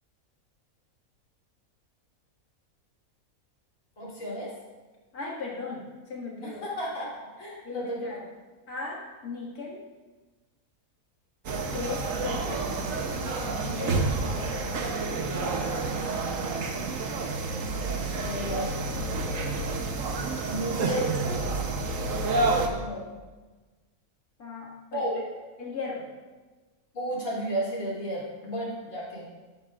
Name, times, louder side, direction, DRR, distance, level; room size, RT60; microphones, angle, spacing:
voice 1, 4.0-4.5 6.4-7.1 7.4-8.1 13.5-13.9 18.2-18.8 20.4-21.1 24.9-25.2 26.9-29.3, right 1 dB, 65° left, -6 dB, 3.6 m, -33 dB
voice 2, 5.1-6.6 7.6-8.3 8.7-9.8 11.5-12.7 13.8-14.6 22.6-23.1 24.4-25.0 25.6-26.0, left 4 dB, 85° left, -4 dB, 2.5 m, -37 dB
sound 1, 11.5-22.7, right 3 dB, 65° right, 1.3 m, -29 dB
13.5 x 10.0 x 2.5 m, 1.3 s
omnidirectional pair, 1.5 m